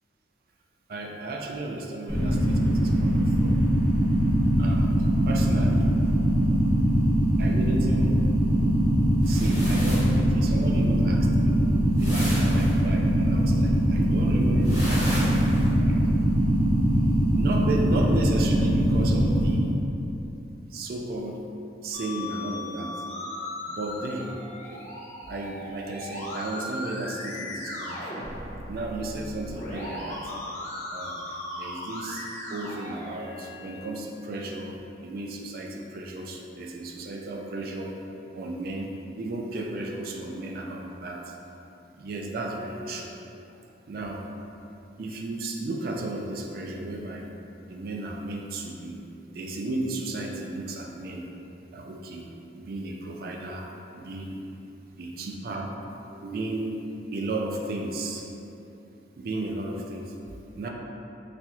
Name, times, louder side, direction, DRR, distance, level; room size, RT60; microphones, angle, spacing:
voice 1, 0.9-3.6 4.6-5.0 5.3-5.9 7.4-8.2 9.3-16.1 17.3-19.7 20.7-21.4 21.8-23.0 23.7-24.4 24.6-24.9 25.3-28.3 28.7-30.3 30.9-37.9 38.3-41.3 42.0-43.1 43.9-44.2 45.0-47.3 47.7-49.1 49.3-51.3 51.7-52.3 52.5-53.7 54.0-54.4 55.0-55.7 56.1-56.8 57.1-58.2 59.2-60.1 60.5-60.7, right 2 dB, 50° right, 1 dB, 0.3 m, -34 dB
sound 1, 2.1-19.5, equal, 5° left, 0.8 m, -22 dB
sound 2, 9.2-10.2 12.0-12.7 14.6-15.7, equal, 20° right, 1.1 m, -34 dB
Musical instrument, 21.9-33.9, left 1 dB, 40° left, 0.7 m, -37 dB
4.1 x 2.8 x 2.3 m, 2.9 s
head